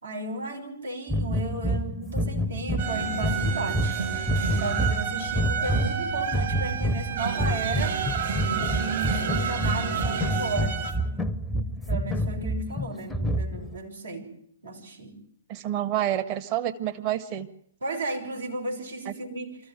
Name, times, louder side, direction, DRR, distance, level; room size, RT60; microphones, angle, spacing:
voice 1, 0.0-4.0 4.4-8.0 8.4-10.8 11.9-14.3 14.6-15.2 17.8-19.6, right 2 dB, 75° right, 0 dB, 6.0 m, -34 dB
sound 1, 1.1-13.8, equal, 5° left, 0.9 m, -28 dB
sound 2, 2.8-10.9, right 7 dB, 55° right, 5.0 m, -30 dB
voice 2, 15.5-17.5 19.1-19.2, right 12 dB, 35° right, 8 dB, 1.6 m, -28 dB
24.5 x 14.5 x 9.1 m, 0.69 s
figure-of-eight pair, 120°, 0 cm